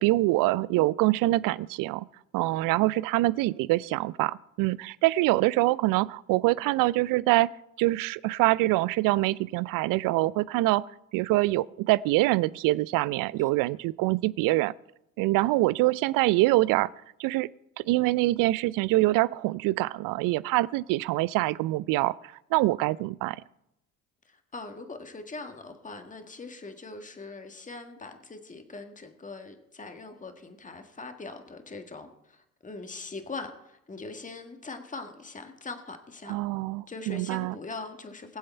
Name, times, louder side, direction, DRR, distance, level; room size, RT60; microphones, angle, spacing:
voice 1, 0.0-2.0 2.3-7.5 7.8-10.8 11.1-14.7 15.2-16.9 17.2-17.5 17.8-23.4 36.3-37.6, right 19 dB, 55° right, 21 dB, 0.5 m, -25 dB
voice 2, 24.3-32.4 32.6-36.4 36.9-38.4, left 3 dB, 20° left, 6 dB, 1.8 m, -41 dB
20.5 x 7.7 x 4.5 m, 0.82 s
hypercardioid pair, 60°, 41 cm